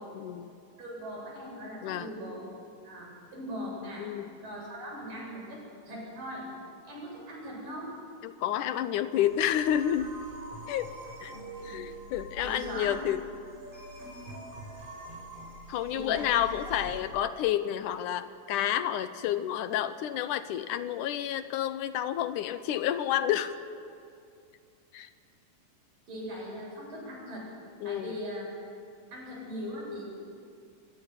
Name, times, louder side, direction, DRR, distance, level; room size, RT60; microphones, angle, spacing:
voice 1, 0.1-0.5 1.8-2.1 4.0-4.3 8.2-10.1 10.7-10.9 11.2-11.4 11.6-13.2 15.7-23.6 24.9-25.1 27.8-28.1, left 11 dB, 75° left, 12 dB, 2.3 m, -30 dB
voice 2, 0.8-2.4 2.8-4.1 4.4-6.5 6.9-7.9 12.4-13.0 15.9-16.7 26.1-27.5 27.8-28.6 29.1-30.0, equal, 85° right, -4 dB, 9.8 m, -40 dB
sound 1, 9.2-17.0, right 2 dB, 45° right, 5.2 m, -45 dB
23.5 x 17.0 x 9.7 m, 2.4 s
omnidirectional pair, 3.8 m